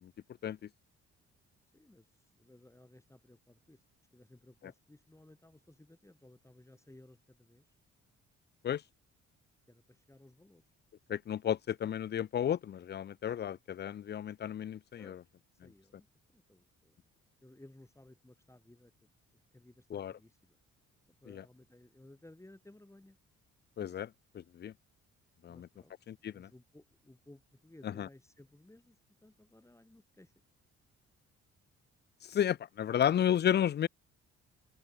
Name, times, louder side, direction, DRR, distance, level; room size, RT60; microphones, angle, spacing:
voice 1, 1.7-3.8 4.1-7.7 9.7-10.7 15.0-15.2 15.5-16.1 16.3-17.0 17.4-19.1 19.3-20.6 21.1-23.2 25.5-25.9 26.3-30.3, left 1 dB, 10° left, 7.6 m, -59 dB
voice 2, 11.1-15.2 19.9-20.1 21.3-21.4 23.8-24.7 25.4-25.7 26.1-26.5 27.8-28.1 32.2-33.9, left 10 dB, 35° left, 0.4 m, -33 dB
cardioid pair, 90°, 30 cm